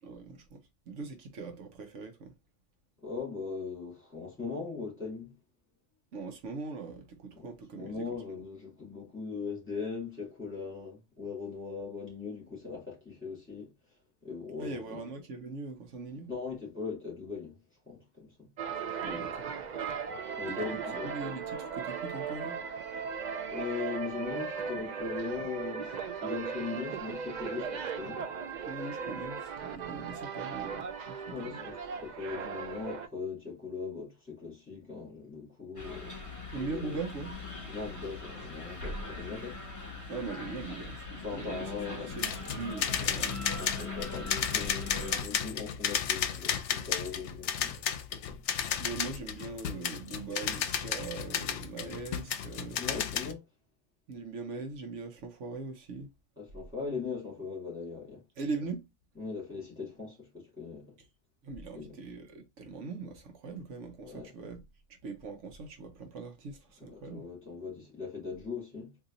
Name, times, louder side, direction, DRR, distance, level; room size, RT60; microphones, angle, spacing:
voice 1, 0.0-2.3 6.1-8.0 14.6-16.3 19.0-19.5 20.5-22.6 28.7-31.6 36.5-37.4 40.1-43.5 48.8-52.8 54.1-56.1 58.4-58.9 61.4-64.6 64.9-67.3, right 4 dB, 80° right, 1.1 m, -41 dB
voice 2, 3.0-5.4 7.3-7.5 7.7-15.0 16.3-17.6 17.9-18.5 18.9-19.3 20.4-21.2 23.5-25.9 26.2-28.2 31.3-36.1 36.6-37.0 37.7-39.6 41.2-42.2 43.0-43.2 43.6-48.4 51.8-52.0 52.7-53.4 56.4-58.2 59.2-61.0 61.7-61.9 64.0-64.3 66.8-69.0, left 5 dB, 10° left, 2.1 m, -40 dB
sound 1, 18.6-33.1, right 6 dB, 60° right, 0.4 m, -37 dB
sound 2, 35.8-45.2, left 3 dB, 25° left, 1.5 m, -41 dB
sound 3, 42.1-53.3, left 8 dB, 75° left, 0.8 m, -33 dB
4.0 x 2.8 x 2.5 m
omnidirectional pair, 1.2 m